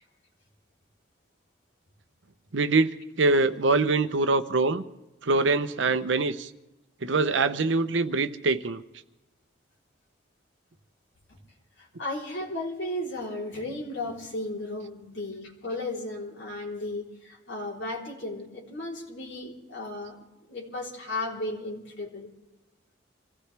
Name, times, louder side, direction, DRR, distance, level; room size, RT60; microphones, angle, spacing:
voice 1, 2.5-2.9 3.2-4.8 5.2-6.5 7.0-8.8, right 3 dB, 80° right, 11 dB, 0.8 m, -24 dB
voice 2, 11.8-22.3, left 1 dB, 80° left, -3 dB, 3.8 m, -35 dB
27.0 x 16.0 x 3.4 m, 0.99 s
head